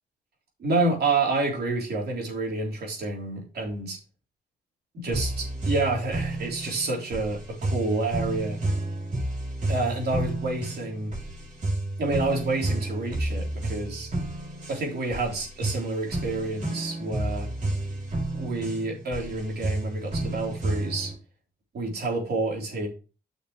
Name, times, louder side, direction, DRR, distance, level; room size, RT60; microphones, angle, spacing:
voice 1, 0.6-4.0 4.9-8.6 9.7-11.1 12.0-14.1 14.7-17.5 18.3-21.1 21.7-22.9, right 3 dB, 65° right, 0 dB, 3.5 m, -28 dB
sound 1, 5.1-21.1, right 2 dB, 45° right, 3.2 m, -31 dB
9.8 x 6.5 x 3.1 m, 0.33 s
cardioid pair, 105°, 18 cm